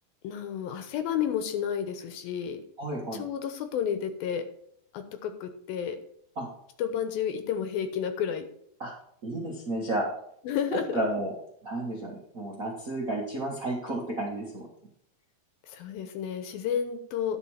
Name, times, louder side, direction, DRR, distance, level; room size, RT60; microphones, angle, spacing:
voice 1, 0.2-2.6 3.1-4.4 4.9-6.0 6.8-8.4 10.4-11.0 15.7-17.4, left 8 dB, 75° left, 8 dB, 2.7 m, -31 dB
voice 2, 2.8-3.2 6.3-6.5 8.8-8.9 9.2-10.1 10.7-11.3 11.6-14.7, right 1 dB, 45° right, -3 dB, 1.1 m, -32 dB
11.5 x 5.7 x 5.7 m, 0.68 s
omnidirectional pair, 4.5 m